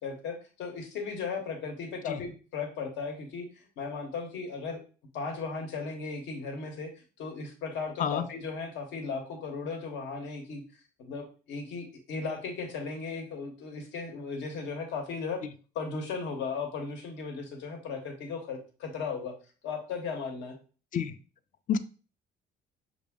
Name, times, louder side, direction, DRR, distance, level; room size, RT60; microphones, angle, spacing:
voice 1, 0.0-4.8 5.1-6.9 7.2-15.4 15.7-19.3 19.6-20.6, left 4 dB, 75° left, 4 dB, 0.9 m, -36 dB
voice 2, 2.1-2.2 8.0-8.2 20.9-21.2 21.7-21.8, left 7 dB, 45° left, 12 dB, 0.4 m, -28 dB
6.1 x 2.1 x 3.5 m, 0.37 s
cardioid pair, 100°, 19 cm